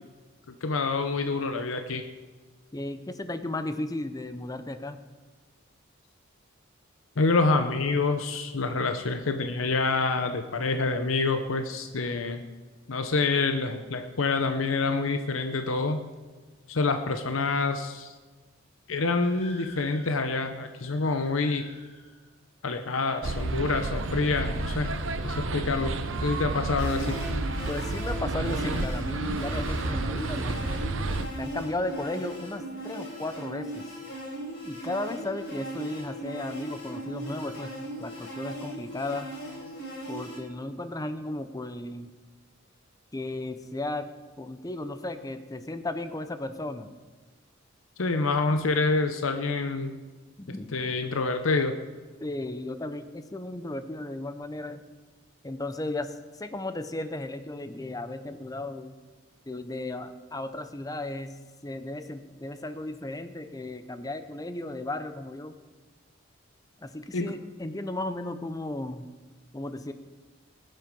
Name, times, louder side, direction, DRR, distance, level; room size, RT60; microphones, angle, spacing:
voice 1, 0.6-2.0 7.2-12.4 12.9-16.1 16.7-18.1 18.9-21.7 22.6-24.9 25.2-25.9 26.2-27.2 48.0-50.0 50.7-51.8 67.1-67.3, left 3 dB, 90° left, 7 dB, 0.8 m, -27 dB
voice 2, 2.7-5.0 27.7-30.8 31.4-34.0 34.6-37.7 38.0-39.3 40.1-42.1 43.1-44.1 44.4-46.9 50.4-50.7 52.2-54.8 55.4-58.9 59.5-61.4 61.6-65.5 66.8-69.1 69.5-69.9, left 2 dB, 20° left, 10 dB, 0.7 m, -35 dB
sound 1, 19.2-22.3, left 3 dB, 35° left, 2.6 m, -50 dB
sound 2, 23.2-31.2, right 2 dB, 70° right, 0.9 m, -31 dB
sound 3, 26.8-40.4, right 1 dB, 60° left, 4.4 m, -38 dB
19.5 x 7.7 x 5.3 m, 1.3 s
head